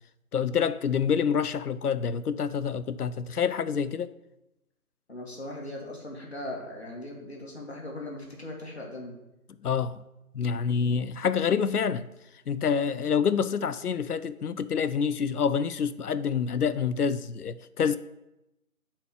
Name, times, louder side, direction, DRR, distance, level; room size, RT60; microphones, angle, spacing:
voice 1, 0.3-4.1 9.6-10.0 10.3-12.1 12.5-18.0, left 6 dB, 85° left, 0.5 m, -27 dB
voice 2, 5.1-9.2, left 1 dB, 45° left, 1.5 m, -39 dB
7.5 x 4.3 x 4.7 m
figure-of-eight pair, 165°, 44 cm